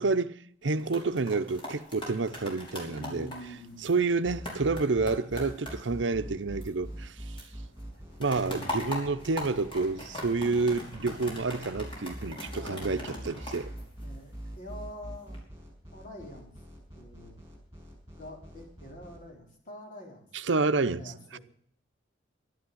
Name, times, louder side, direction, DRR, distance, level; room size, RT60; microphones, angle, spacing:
voice 1, 0.0-3.3 3.8-7.4 8.2-13.7 20.3-21.0 21.3-21.4, right 3 dB, 70° right, 0.7 m, -29 dB
sound 1, 0.6-7.1 7.4-14.6 15.1-15.4, left 1 dB, 30° left, 5.2 m, -41 dB
voice 2, 2.8-3.9 12.5-13.4 14.0-15.4 15.9-16.6 16.9-17.4 18.2-20.3 20.8-21.4, left 1 dB, 45° left, 3.9 m, -46 dB
sound 2, 4.2-19.2, equal, 15° right, 5.8 m, -43 dB
12.0 x 11.5 x 7.8 m
head